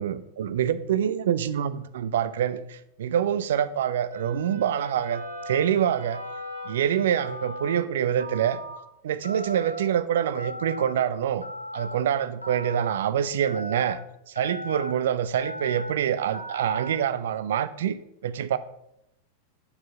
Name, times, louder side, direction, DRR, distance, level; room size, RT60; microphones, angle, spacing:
voice 1, 0.0-6.2 6.7-8.6 9.0-11.4 11.7-14.0 14.3-18.0 18.2-18.6, right 9 dB, 60° right, 15 dB, 0.4 m, -26 dB
Wind instrument woodwind instrument, 4.1-8.4, equal, 80° right, 1.2 m, -42 dB
Telephone, 5.1-5.6 6.1-6.7 7.2-7.8 8.2-8.8 9.2-9.8 10.3-10.9 11.4-12.0 12.4-12.9 13.4-13.9 14.3-14.9 15.3-15.9 16.3-16.9, equal, 85° left, 0.8 m, -38 dB
8.6 x 4.6 x 4.2 m, 0.81 s
figure-of-eight pair, 90°, 0 cm